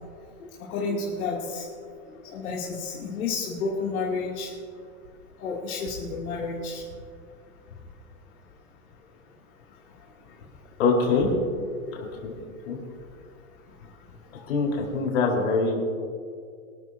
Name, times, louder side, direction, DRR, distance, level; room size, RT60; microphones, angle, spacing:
voice 1, 0.7-1.6 2.3-4.5 5.4-6.8, left 4 dB, 80° left, -5 dB, 2.9 m, -30 dB
voice 2, 10.8-11.3 11.9-12.3 12.7-12.8 14.5-15.7, left 4 dB, 60° left, -2 dB, 4.4 m, -24 dB
25.5 x 13.0 x 2.8 m, 2.3 s
supercardioid pair, 160°, 43 cm